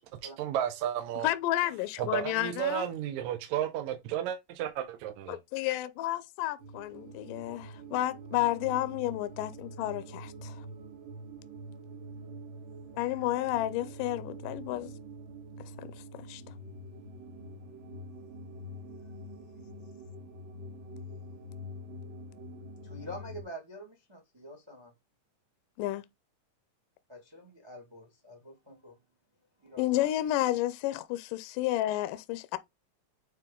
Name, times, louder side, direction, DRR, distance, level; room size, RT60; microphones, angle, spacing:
voice 1, 0.2-1.3 2.0-5.4, right 10 dB, 70° right, 2.0 m, -33 dB
voice 2, 1.2-2.9 5.3-10.6 12.9-14.9 15.8-16.4 25.8-26.1 29.8-32.6, left 15 dB, 80° left, 2.1 m, -31 dB
sound 1, 6.6-23.4, right 1 dB, 85° right, 3.1 m, -45 dB
voice 3, 22.8-24.9 27.1-29.0 29.6-30.0, equal, 40° right, 0.3 m, -46 dB
9.0 x 3.3 x 3.7 m
omnidirectional pair, 3.9 m